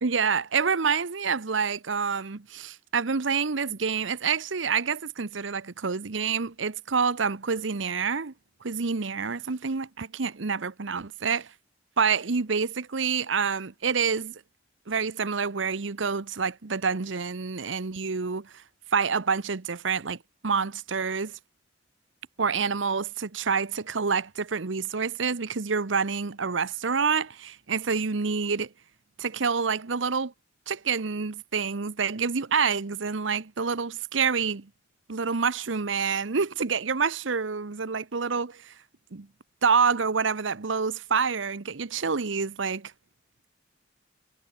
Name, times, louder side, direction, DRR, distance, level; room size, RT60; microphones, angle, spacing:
voice 1, 0.0-8.3 8.6-11.5 12.0-14.4 14.9-18.5 18.9-20.2 20.4-21.4 22.4-28.7 29.2-30.3 30.7-34.7 35.1-38.7 39.1-39.3 39.6-42.9, right 5 dB, 85° right, 0.9 m, -27 dB
head